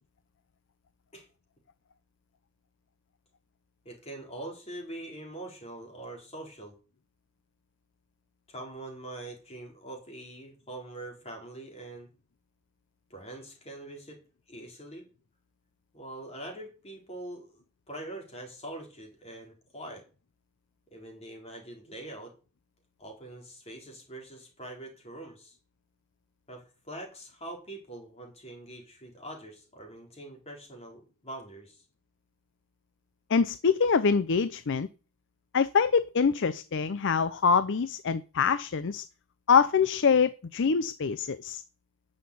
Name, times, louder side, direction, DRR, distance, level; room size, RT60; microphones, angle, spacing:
voice 1, 3.8-6.8 8.5-12.1 13.1-14.2 14.5-15.1 15.9-20.0 20.9-22.3 23.0-25.6 26.5-31.8, right 1 dB, 30° left, 4.0 m, -43 dB
voice 2, 33.3-34.9 35.5-39.0 39.5-41.6, left 5 dB, 55° left, 0.5 m, -25 dB
9.6 x 6.5 x 8.5 m
head